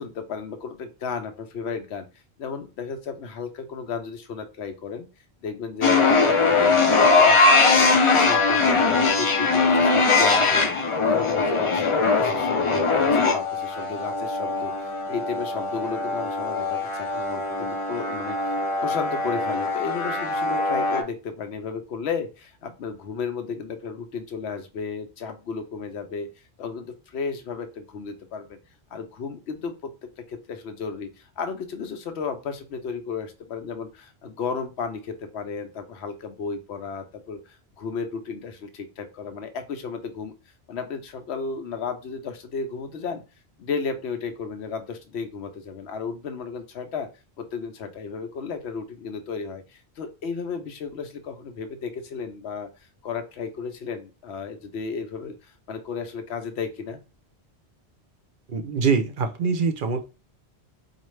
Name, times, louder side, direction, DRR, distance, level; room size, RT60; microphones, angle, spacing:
voice 1, 0.0-2.1 2.4-5.1 5.4-7.4 7.7-28.6 28.9-29.7 30.3-40.3 40.7-43.2 43.6-47.1 47.4-52.7 53.0-57.0, left 5 dB, 85° left, 8 dB, 1.0 m, -34 dB
sound 1, 5.8-21.0, left 3 dB, 40° left, 0.5 m, -21 dB
voice 2, 58.5-60.0, right 5 dB, 60° right, 7 dB, 0.6 m, -24 dB
4.4 x 2.4 x 3.1 m, 0.31 s
omnidirectional pair, 1.1 m